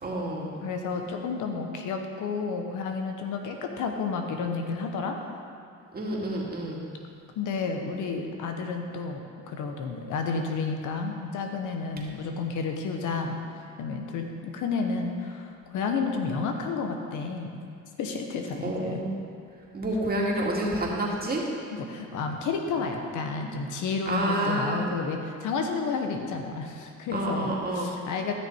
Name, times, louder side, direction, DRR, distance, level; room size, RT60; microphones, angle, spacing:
voice 1, 0.0-0.5 5.9-6.9 18.6-19.2 19.7-21.4 24.1-24.9 27.1-28.0, right 1 dB, 30° right, -3 dB, 2.2 m, -28 dB
voice 2, 0.6-5.2 7.4-13.4 13.8-17.5 18.0-19.0 21.7-28.3, left 4 dB, 85° left, 4 dB, 1.1 m, -31 dB
13.5 x 6.5 x 4.6 m, 2.3 s
cardioid pair, 90°, 30 cm